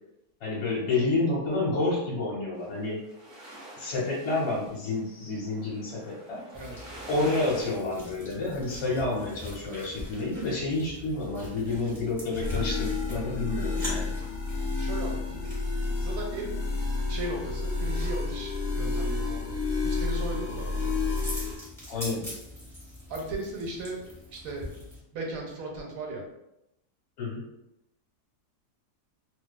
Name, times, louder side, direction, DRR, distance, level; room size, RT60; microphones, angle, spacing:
voice 1, 0.4-3.0 3.8-6.4 7.1-14.1 21.9-22.3 27.2-27.4, left 2 dB, 55° left, -5 dB, 0.8 m, -29 dB
sound 1, 2.6-7.6, right 1 dB, 50° right, 0.6 m, -45 dB
sound 2, 6.5-25.0, left 1 dB, ahead, 0.6 m, -43 dB
voice 2, 6.5-6.9 14.5-15.4 16.0-16.6 17.1-19.6 19.8-20.9 23.1-24.0 24.3-24.9 25.1-26.2, right 2 dB, 65° right, 0 dB, 1.0 m, -37 dB
sound 3, 12.4-21.5, left 3 dB, 75° left, 0.4 m, -30 dB
2.5 x 2.3 x 2.3 m, 0.85 s
omnidirectional pair, 1.7 m